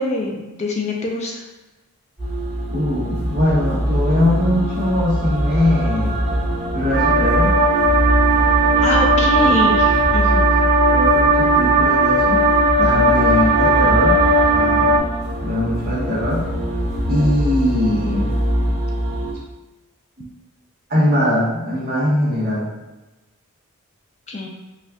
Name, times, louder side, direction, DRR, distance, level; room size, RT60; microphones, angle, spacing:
voice 1, 0.0-1.4 8.8-10.5 12.8-13.1 24.3-24.5, left 2 dB, 30° left, 0 dB, 0.4 m, -24 dB
sound 1, 2.2-19.3, equal, ahead, 1.3 m, -23 dB
voice 2, 2.7-6.2 6.7-7.6 9.4-9.6 9.9-10.0 10.9-12.4 12.8-14.9 15.4-16.5 17.1-18.3 20.2-20.3 20.9-22.7, left 1 dB, 40° right, -6 dB, 1.2 m, -21 dB
sound 2, 6.9-15.0, right 2 dB, 65° right, 0.6 m, -16 dB
4.1 x 2.4 x 3.6 m, 1.1 s
head